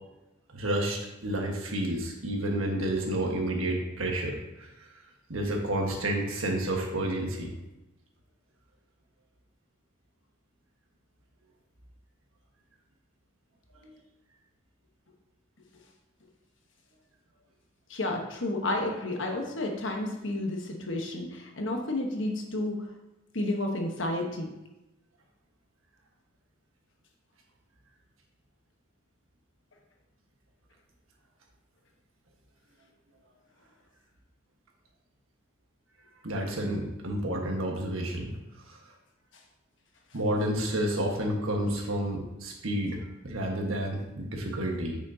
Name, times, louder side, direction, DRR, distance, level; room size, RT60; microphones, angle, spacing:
voice 1, 0.5-4.9 5.3-7.5 13.8-13.9 36.2-38.3 38.7-38.8 40.1-45.0, right 1 dB, 90° right, 1 dB, 1.4 m, -30 dB
voice 2, 17.9-22.9 23.3-24.5 39.3-39.4, left 1 dB, 65° left, 2 dB, 1.2 m, -31 dB
8.9 x 6.3 x 2.8 m, 0.97 s
head